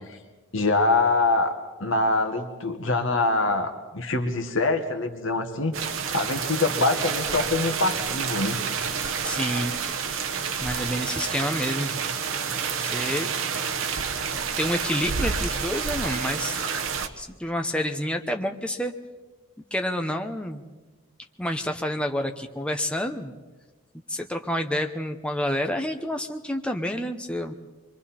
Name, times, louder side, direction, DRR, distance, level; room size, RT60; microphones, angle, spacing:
voice 1, 0.5-1.5 1.8-8.6 9.3-9.5, left 2 dB, 60° left, 5 dB, 1.6 m, -24 dB
sound 1, 5.7-17.1, right 6 dB, 65° right, 1.1 m, -29 dB
voice 2, 9.2-9.8 10.6-11.9 12.8-13.3 14.6-16.6 17.2-18.9 19.7-20.6 21.4-23.3 24.1-27.5, equal, 5° left, 4 dB, 0.9 m, -28 dB
26.0 x 23.0 x 4.4 m, 1.2 s
head